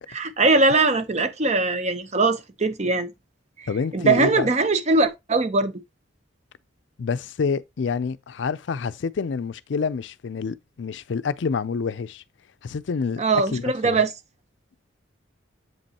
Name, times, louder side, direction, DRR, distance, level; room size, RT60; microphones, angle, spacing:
voice 1, 0.1-3.1 3.6-5.7 13.2-14.1, right 3 dB, 35° right, 0.8 m, -21 dB
voice 2, 3.7-4.5 7.0-12.2 12.6-13.2 13.5-14.0, left 5 dB, 70° left, 0.4 m, -27 dB
7.7 x 5.3 x 2.8 m
head